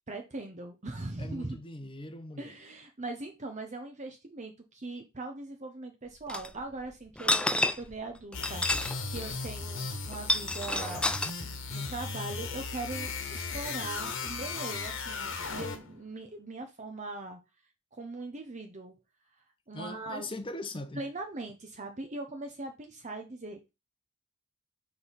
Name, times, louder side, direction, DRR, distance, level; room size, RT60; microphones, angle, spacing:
voice 1, 0.1-1.6 2.4-17.4 17.9-18.9 19.7-20.3 20.9-23.7, right 2 dB, 30° right, 0.8 m, -40 dB
voice 2, 1.2-2.5 19.7-21.0, left 2 dB, 25° left, 0.9 m, -40 dB
sound 1, 6.3-6.5 7.2-7.9 8.3-9.0 9.2-9.3 10.1-11.3, left 1 dB, 5° left, 0.3 m, -29 dB
sound 2, 8.3-16.0, left 4 dB, 60° left, 1.4 m, -37 dB
6.9 x 3.5 x 5.6 m
head